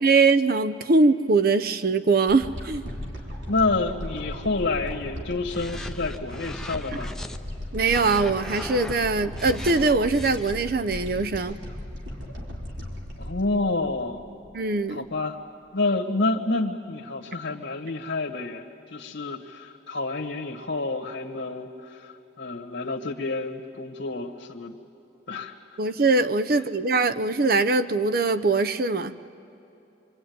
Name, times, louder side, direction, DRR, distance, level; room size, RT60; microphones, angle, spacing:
voice 1, 0.0-2.8 7.7-11.6 14.5-15.0 25.8-29.1, right 3 dB, 50° right, 10 dB, 0.6 m, -22 dB
sound 1, 2.3-14.6 15.1-15.2, left 1 dB, 75° right, 3.6 m, -37 dB
voice 2, 3.5-7.1 13.2-14.2 14.9-15.4 15.7-18.6 18.9-24.7 25.3-25.5, left 3 dB, 85° left, 0 dB, 1.4 m, -28 dB
sound 2, 5.5-7.4 7.8-10.5, left 1 dB, 5° left, 0.6 m, -38 dB
25.0 x 25.0 x 9.3 m, 2.8 s
head